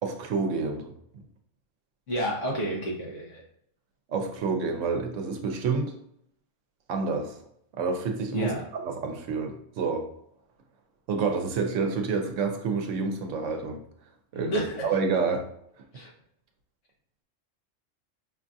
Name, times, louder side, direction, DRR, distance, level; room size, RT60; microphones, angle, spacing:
voice 1, 0.0-1.2 4.1-5.9 6.9-7.4 7.8-8.5 8.8-10.0 11.1-13.8 14.3-14.6 14.8-15.5, right 4 dB, 75° right, 5 dB, 1.0 m, -28 dB
voice 2, 2.1-3.4 8.3-8.6 14.3-14.8 15.9-16.1, right 1 dB, 75° left, -2 dB, 1.4 m, -30 dB
5.1 x 2.4 x 2.6 m, 0.70 s
omnidirectional pair, 1.3 m